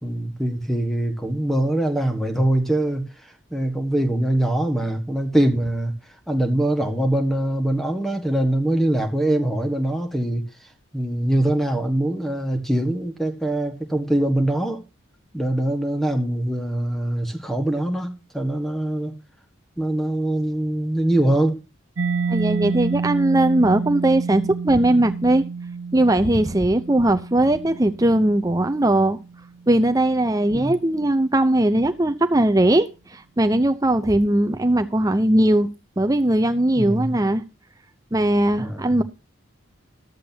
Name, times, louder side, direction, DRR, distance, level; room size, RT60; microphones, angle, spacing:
voice 1, 0.0-3.1 3.5-5.9 6.3-10.4 10.9-14.8 15.3-19.1 19.8-21.6 30.5-30.7 36.7-37.2 38.6-39.0, right 1 dB, ahead, 1.4 m, -23 dB
Mallet percussion, 22.0-29.5, right 5 dB, 65° right, 0.6 m, -29 dB
voice 2, 22.3-25.4 25.9-29.2 29.7-35.7 36.0-37.4 38.1-39.0, right 1 dB, 15° right, 0.6 m, -19 dB
14.0 x 12.0 x 2.8 m
head